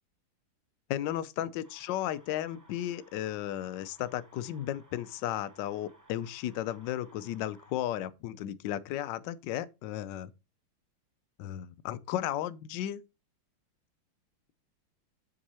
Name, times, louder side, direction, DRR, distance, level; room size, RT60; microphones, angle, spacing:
voice 1, 0.9-10.3 11.4-13.0, left 12 dB, 70° left, 1.2 m, -34 dB
sound 1, 1.6-7.7, right 1 dB, 20° right, 0.5 m, -60 dB
7.5 x 5.5 x 4.2 m
omnidirectional pair, 2.4 m